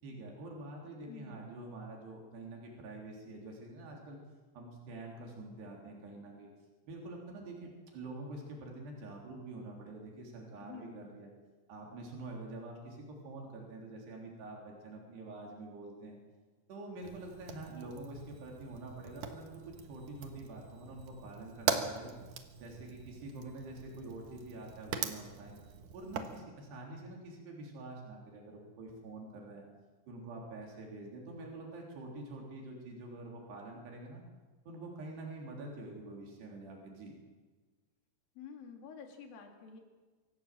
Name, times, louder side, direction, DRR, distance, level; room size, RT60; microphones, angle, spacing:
voice 1, 0.0-4.2 4.6-6.5 6.9-11.3 11.7-16.2 16.7-25.6 25.9-29.6 30.1-34.2 34.7-37.1, right 2 dB, 90° right, -1 dB, 5.6 m, -46 dB
voice 2, 1.1-1.4 10.6-11.0 38.4-39.8, left 6 dB, 65° left, 3 dB, 4.2 m, -49 dB
Fire, 17.0-26.4, right 7 dB, 60° right, 2.6 m, -41 dB
25.0 x 16.5 x 7.6 m, 1.4 s
omnidirectional pair, 4.6 m